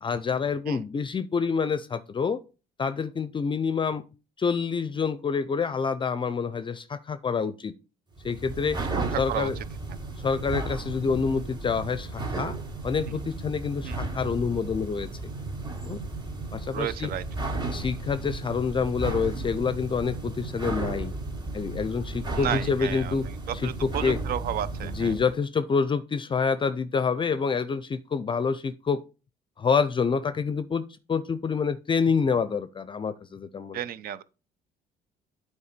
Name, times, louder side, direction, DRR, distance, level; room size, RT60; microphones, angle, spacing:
voice 1, 0.0-2.4 2.8-4.0 4.4-7.7 8.2-8.8 9.2-9.6 10.2-12.6 12.8-15.1 15.8-16.0 16.5-17.1 17.7-21.1 21.5-23.3 23.5-24.2 24.8-29.0 29.6-30.8 31.1-33.9, left 5 dB, 30° left, 0.5 m, -27 dB
sound 1, 8.2-25.3, right 2 dB, 25° right, 2.6 m, -34 dB
voice 2, 9.0-9.5 13.9-14.0 16.7-17.5 22.3-23.1 23.5-25.1 33.7-34.2, right 11 dB, 60° right, 0.6 m, -32 dB
8.4 x 4.7 x 5.1 m
cardioid pair, 110°, 17 cm